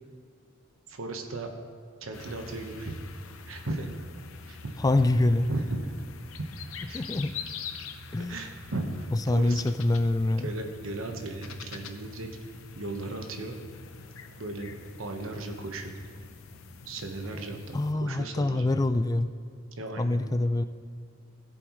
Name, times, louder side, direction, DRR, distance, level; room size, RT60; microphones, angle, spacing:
voice 1, 0.9-1.5 2.0-3.0 3.5-3.9 4.5-4.7 5.5-5.8 6.9-7.0 8.3-9.6 10.4-12.3 12.7-13.5 14.4-14.7 15.0-16.0 16.9-18.7 19.8-20.2, right 2 dB, 80° right, 3 dB, 1.2 m, -36 dB
sound 1, 2.1-17.9, left 5 dB, 85° left, 0.7 m, -44 dB
voice 2, 4.8-5.5 6.9-7.3 8.1-8.4 9.3-10.5 17.7-19.3 20.0-20.6, left 2 dB, 20° left, 11 dB, 0.3 m, -25 dB
17.5 x 7.9 x 3.1 m, 2.1 s
head